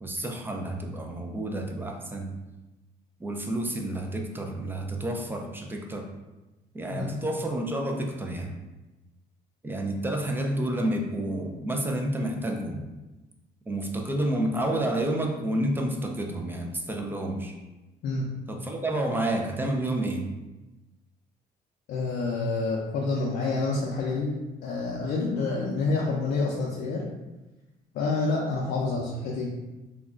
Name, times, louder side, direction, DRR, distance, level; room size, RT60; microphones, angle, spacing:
voice 1, 0.0-2.4 3.2-6.1 6.7-8.6 9.6-12.8 13.7-17.5 18.5-20.3, right 1 dB, 10° right, 2 dB, 0.4 m, -30 dB
voice 2, 21.9-24.4 24.6-27.0 27.9-29.5, left 3 dB, 70° left, -4 dB, 0.5 m, -28 dB
2.3 x 2.1 x 3.6 m, 1.1 s
cardioid pair, 110°, 17 cm